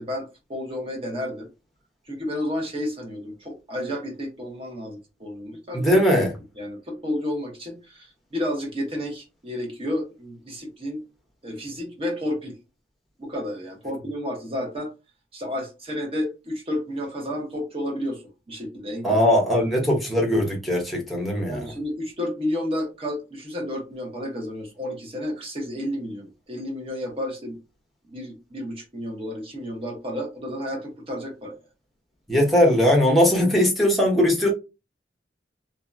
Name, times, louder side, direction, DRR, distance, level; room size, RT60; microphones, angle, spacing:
voice 1, 0.0-1.5 2.1-6.0 6.6-11.0 11.4-12.6 13.2-14.9 15.3-18.2 18.5-19.2 21.5-27.6 28.1-31.6 33.4-33.5, left 1 dB, 30° right, 0.9 m, -31 dB
voice 2, 5.7-6.3 19.0-21.7 32.3-34.5, equal, ahead, 0.8 m, -20 dB
2.8 x 2.2 x 2.4 m
head